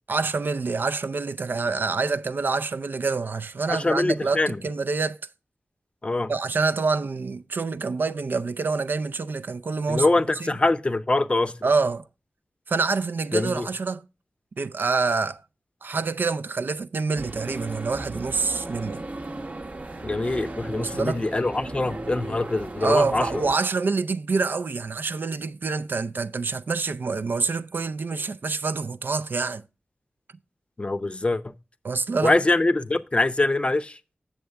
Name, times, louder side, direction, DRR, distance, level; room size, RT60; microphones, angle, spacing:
voice 1, 0.1-5.2 6.3-10.1 10.4-10.6 11.6-12.0 12.7-14.0 14.6-15.4 15.8-19.0 20.8-21.2 22.8-29.6 31.8-32.4, right 4 dB, 60° right, 0.4 m, -26 dB
voice 2, 3.7-4.6 6.0-6.3 9.9-11.5 13.3-13.7 20.0-23.4 30.8-31.5 32.2-34.0, left 2 dB, 30° left, 0.6 m, -24 dB
sound 1, 17.2-23.6, right 2 dB, 45° right, 0.8 m, -36 dB
8.0 x 7.5 x 3.4 m
wide cardioid pair, 95°, 4 cm